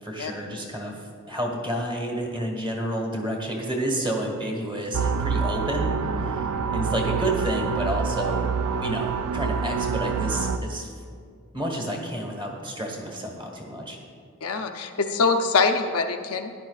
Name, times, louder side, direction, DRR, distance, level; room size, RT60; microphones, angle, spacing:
voice 1, 0.0-6.5 6.7-8.4 8.8-10.9 11.5-14.0, right 1 dB, 20° right, 0 dB, 1.4 m, -30 dB
sound 1, 4.9-10.6, right 5 dB, 75° right, 0.4 m, -26 dB
voice 2, 14.4-16.5, left 4 dB, 75° left, 5 dB, 0.6 m, -24 dB
13.0 x 10.5 x 2.4 m, 2.2 s
head